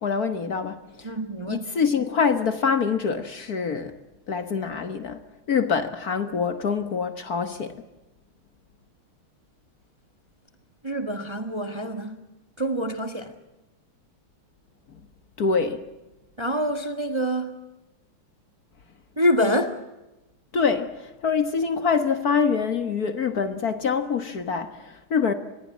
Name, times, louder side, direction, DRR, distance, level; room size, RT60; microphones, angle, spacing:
voice 1, 0.0-1.1 1.5-4.0 4.3-5.2 5.5-7.8 15.4-15.8 20.5-25.3, left 5 dB, 50° left, 1.7 m, -25 dB
voice 2, 1.0-1.7 10.8-12.2 12.6-13.3 16.4-17.6 19.2-19.8, equal, 15° right, 1.4 m, -26 dB
26.0 x 21.0 x 7.3 m
omnidirectional pair, 2.3 m